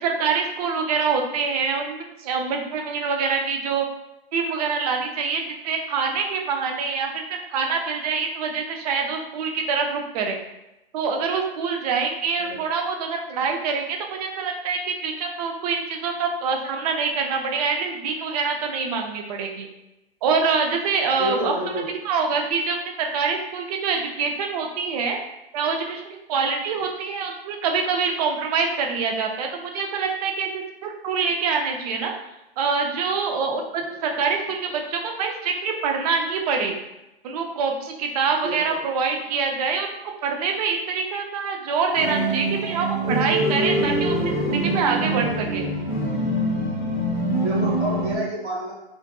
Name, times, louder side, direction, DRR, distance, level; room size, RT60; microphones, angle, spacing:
voice 1, 0.0-3.9 4.3-7.2 7.5-10.4 10.9-19.7 20.2-21.5 22.0-25.2 25.5-32.1 32.6-36.8 37.2-39.9 40.2-45.7, right 5 dB, 40° right, 3 dB, 0.4 m, -25 dB
voice 2, 21.2-21.9 33.9-34.2 38.4-38.8 47.3-48.7, equal, 15° right, -8 dB, 1.2 m, -29 dB
sound 1, 41.9-48.2, right 1 dB, 50° left, 0.7 m, -24 dB
2.5 x 2.4 x 2.2 m, 0.91 s
hypercardioid pair, 120°, 31 cm